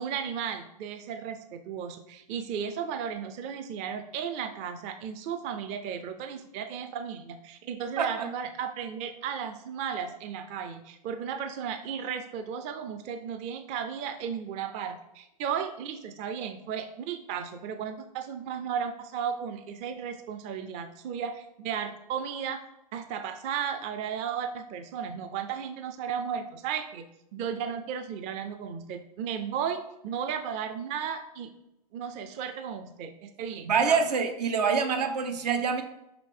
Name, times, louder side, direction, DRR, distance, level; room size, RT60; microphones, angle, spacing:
voice 1, 0.0-22.6 22.9-31.5 31.9-34.0, right 7 dB, 35° right, 8 dB, 0.5 m, -35 dB
voice 2, 8.0-8.3 33.6-35.8, right 5 dB, 80° right, 7 dB, 0.8 m, -26 dB
5.3 x 4.7 x 3.7 m, 0.86 s
hypercardioid pair, 125°, 20 cm